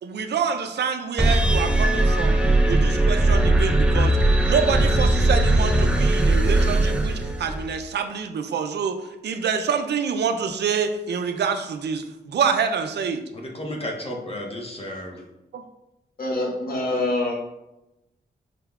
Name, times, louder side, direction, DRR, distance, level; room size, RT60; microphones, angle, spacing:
voice 1, 0.0-4.2 4.4-13.2 15.5-15.6, right 6 dB, 75° right, 7 dB, 0.4 m, -26 dB
sound 1, 1.2-7.8, right 1 dB, 5° right, 0.6 m, -19 dB
voice 2, 13.3-15.2, left 1 dB, 35° left, 0 dB, 0.8 m, -33 dB
voice 3, 16.2-17.3, left 2 dB, 60° left, -2 dB, 1.2 m, -25 dB
4.9 x 3.5 x 2.3 m, 0.93 s
cardioid pair, 80°, 17 cm